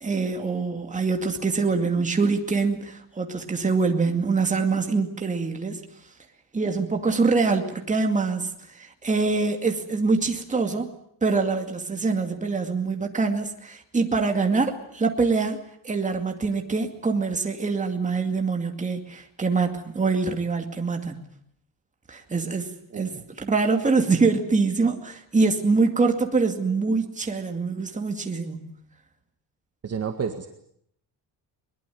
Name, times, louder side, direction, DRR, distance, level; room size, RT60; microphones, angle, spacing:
voice 1, 0.0-5.9 6.5-10.9 11.2-15.6 15.8-21.2 22.1-22.7 22.9-28.7, right 4 dB, 15° right, 4 dB, 2.4 m, -24 dB
voice 2, 22.9-23.2 29.8-30.5, right 6 dB, 35° right, 5 dB, 1.8 m, -30 dB
22.0 x 21.5 x 9.3 m, 0.71 s
cardioid pair, 180°, 42 cm